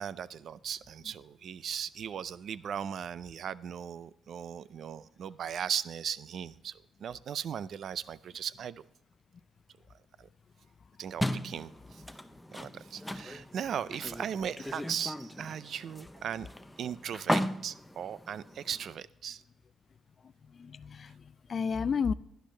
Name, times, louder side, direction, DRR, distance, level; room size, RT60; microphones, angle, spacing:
voice 1, 0.0-6.7 7.0-8.8 10.2-10.3 11.0-12.0 12.5-16.5 16.8-19.4, right 8 dB, 65° right, 0.4 m, -38 dB
sound 1, 11.2-18.9, left 1 dB, 5° left, 0.6 m, -37 dB
voice 2, 20.2-22.1, left 6 dB, 45° left, 0.3 m, -33 dB
11.5 x 10.5 x 3.2 m
cardioid pair, 90°, 0 cm